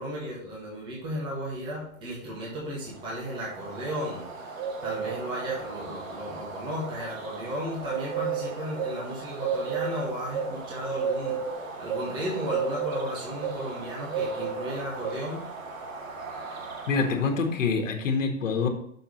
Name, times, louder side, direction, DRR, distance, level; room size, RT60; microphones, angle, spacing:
voice 1, 0.0-15.4, equal, 10° right, -5 dB, 1.6 m, -35 dB
Bird, 2.9-17.6, right 5 dB, 80° right, 1.9 m, -34 dB
voice 2, 16.9-18.7, left 4 dB, 70° left, 3 dB, 1.6 m, -26 dB
6.5 x 4.5 x 6.3 m, 0.70 s
hypercardioid pair, 170°, 40 cm